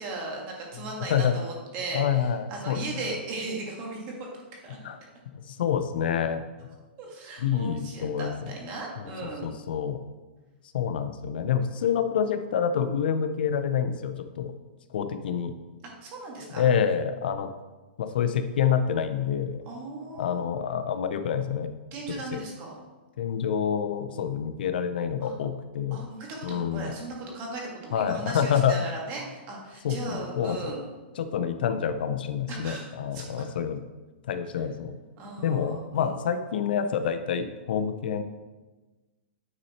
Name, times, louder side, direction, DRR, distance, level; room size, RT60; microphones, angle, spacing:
voice 1, 0.0-4.8 7.0-9.5 16.0-16.6 19.6-20.4 21.9-22.8 25.2-25.3 25.9-30.9 32.5-33.2 35.2-36.1, right 2 dB, 25° right, -1 dB, 1.7 m, -37 dB
voice 2, 1.9-2.8 4.8-5.0 5.3-6.4 7.4-8.5 9.4-10.0 10.7-14.5 14.9-15.5 16.5-17.5 18.0-19.6 20.2-21.7 22.3-22.4 23.2-26.0 26.4-26.9 27.9-28.9 29.8-30.8 31.2-33.8 34.2-34.9 35.4-38.2, left 8 dB, 60° left, 9 dB, 0.6 m, -27 dB
9.6 x 4.2 x 4.3 m, 1.2 s
hypercardioid pair, 165°, 6 cm